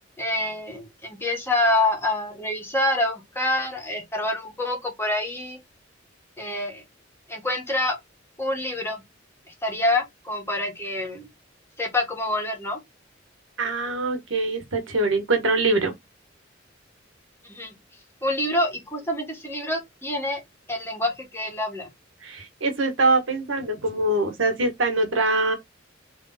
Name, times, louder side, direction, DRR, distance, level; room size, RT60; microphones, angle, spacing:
voice 1, 0.2-5.6 6.4-6.8 7.3-8.0 8.4-9.0 9.6-11.3 11.8-12.8 17.5-17.7 18.2-20.4 20.7-21.9, left 1 dB, 10° left, 1.7 m, -26 dB
voice 2, 13.6-15.9 22.2-25.5, right 2 dB, 85° right, 1.5 m, -23 dB
3.5 x 3.3 x 4.1 m
head